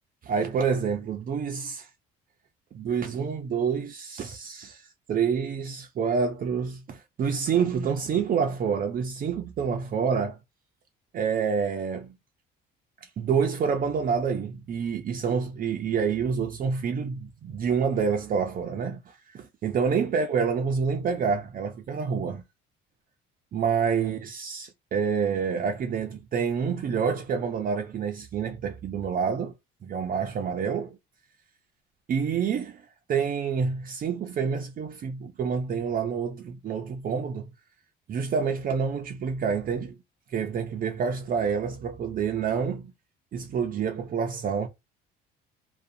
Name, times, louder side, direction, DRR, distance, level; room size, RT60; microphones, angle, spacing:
voice 1, 0.2-1.9 2.7-10.4 11.1-12.1 13.0-22.4 23.5-29.5 29.8-31.0 32.1-37.5 38.1-40.0 40.3-42.9 43.3-44.7, right 6 dB, 40° right, 0.5 m, -28 dB
2.5 x 2.2 x 2.6 m
supercardioid pair, 80°, 21 cm